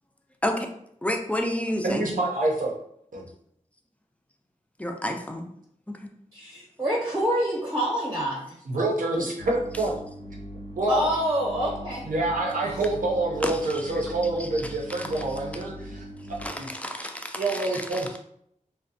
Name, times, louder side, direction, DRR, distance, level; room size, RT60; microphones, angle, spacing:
voice 1, 1.0-2.0 4.8-5.5 13.4-13.5 13.9-14.0 16.4-16.5 16.8-17.4, left 1 dB, 10° left, 4 dB, 0.3 m, -28 dB
voice 2, 1.8-2.7 3.1-3.2 8.7-9.9 10.7-11.1 12.0-16.1 16.5-16.7 17.3-18.2, right 2 dB, 80° right, -1 dB, 0.6 m, -27 dB
voice 3, 6.3-8.5 10.9-12.0 12.6-12.8, right 1 dB, 25° right, -4 dB, 0.7 m, -27 dB
sound 1, 9.4-16.5, equal, 60° left, 0.5 m, -40 dB
2.7 x 2.1 x 2.6 m, 0.71 s
wide cardioid pair, 75°, 14 cm